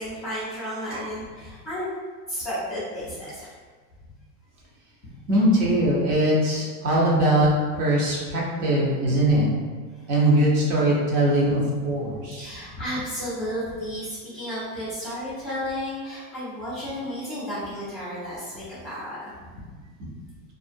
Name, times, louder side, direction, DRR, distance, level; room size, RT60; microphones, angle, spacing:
voice 1, 0.0-1.9 2.3-3.5 12.3-19.3, equal, ahead, -19 dB, 0.3 m, -32 dB
voice 2, 5.3-7.5 7.8-9.5 10.1-12.5, right 1 dB, 50° right, -4 dB, 0.8 m, -21 dB
2.5 x 2.1 x 2.5 m, 1.5 s
supercardioid pair, 135°, 48 cm